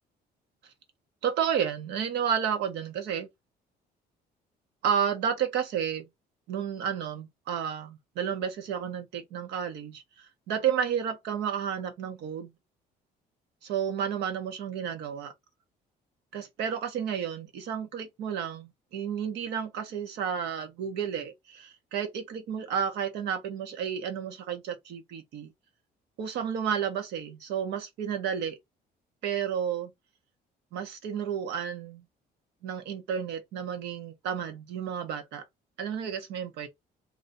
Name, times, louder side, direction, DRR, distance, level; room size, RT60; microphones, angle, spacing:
voice 1, 1.2-3.3 4.8-6.0 6.5-12.5 13.6-15.3 16.3-25.5 26.2-28.6 29.2-29.9 30.7-32.0 32.6-35.4 35.8-36.7, right 8 dB, 80° right, 1.2 m, -31 dB
3.0 x 2.7 x 3.9 m
cardioid pair, 110°, 17 cm